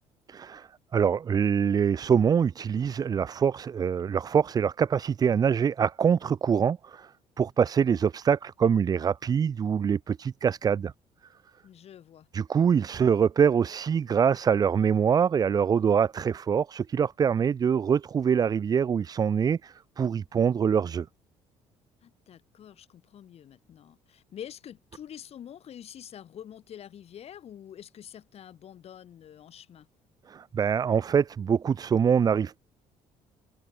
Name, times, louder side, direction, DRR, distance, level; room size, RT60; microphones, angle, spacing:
voice 1, 0.3-0.7 0.9-7.1 7.4-10.9 12.3-21.0 30.3-32.6, right 7 dB, 30° right, 0.5 m, -24 dB
voice 2, 11.6-12.3 22.0-29.9, left 10 dB, 50° left, 7.1 m, -46 dB
cardioid pair, 115°, 13 cm